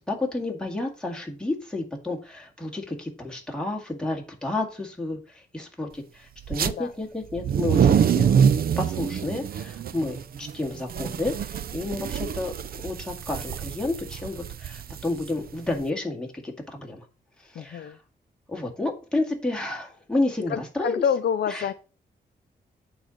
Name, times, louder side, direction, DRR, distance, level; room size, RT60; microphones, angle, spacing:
voice 1, 0.1-8.3 8.8-12.5 12.8-17.1 17.4-17.9 18.5-21.0 21.5-21.7, left 2 dB, 5° left, 0 dB, 2.1 m, -31 dB
sound 1, 6.4-6.7 7.3-15.8, right 8 dB, 60° right, 0.5 m, -25 dB
voice 2, 17.5-18.0 20.5-21.7, left 8 dB, 80° left, 11 dB, 0.6 m, -27 dB
8.9 x 4.1 x 6.4 m, 0.35 s
wide cardioid pair, 140°, 17 cm